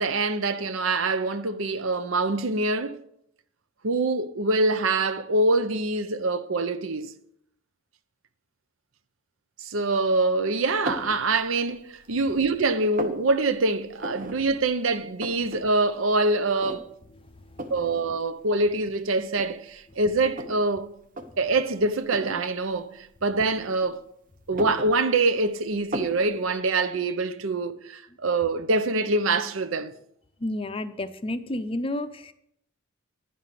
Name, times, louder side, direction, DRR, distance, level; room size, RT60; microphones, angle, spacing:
voice 1, 0.0-3.0 3.8-7.1 9.6-16.9 17.7-20.9 21.4-24.0 24.5-29.9, right 3 dB, 75° right, 0.7 m, -25 dB
sound 1, 10.9-11.2 11.7-12.4 12.6-13.2 14.0-14.4 14.7-14.8 15.0-15.6 16.0-16.1 16.6-17.1 17.6-17.9 18.7-18.8 19.3-20.6 21.0-21.3 22.1-22.4 23.4-24.0 24.4-25.4 25.9-26.2, right 1 dB, 40° right, 0.9 m, -35 dB
voice 2, 17.2-17.7 30.4-32.3, left 1 dB, 25° left, 0.5 m, -31 dB
10.0 x 5.6 x 6.7 m
head